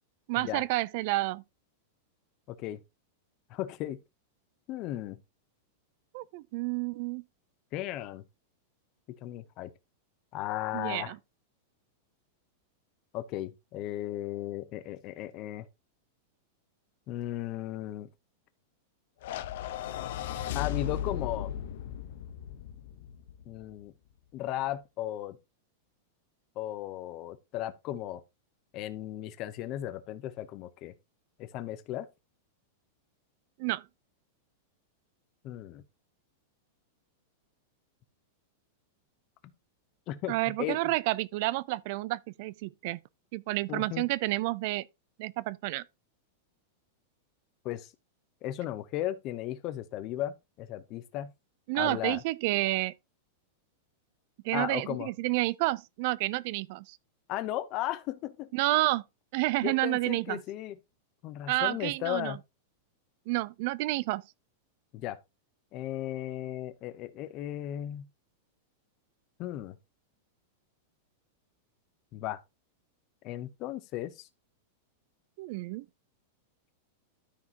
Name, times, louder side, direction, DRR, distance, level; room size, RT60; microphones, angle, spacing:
voice 1, 0.3-1.4 6.1-7.2 10.7-11.2 33.6-33.8 40.3-43.0 43.3-44.8 45.2-45.8 51.7-52.9 54.4-57.0 58.5-59.0 59.3-60.4 61.5-62.4 63.3-64.2 75.4-75.9, right 19 dB, 45° right, 0.4 m, -30 dB
voice 2, 2.5-2.8 3.5-4.0 4.7-5.2 7.7-8.2 9.2-9.7 10.3-11.1 13.1-15.7 17.1-18.1 20.5-21.5 23.5-23.9 24.3-25.4 26.6-28.2 28.7-30.9 31.4-32.1 35.4-35.8 40.1-40.8 43.7-44.0 47.6-47.9 48.4-51.3 51.7-52.2 54.5-55.1 57.3-58.5 59.6-60.8 61.2-62.4 64.9-65.2 65.7-68.1 69.4-69.8 72.1-72.4 73.2-74.3, left 13 dB, 35° left, 0.8 m, -36 dB
sound 1, 19.2-23.6, left 11 dB, 60° left, 0.9 m, -36 dB
13.0 x 4.8 x 2.9 m
supercardioid pair, 165°, 0 cm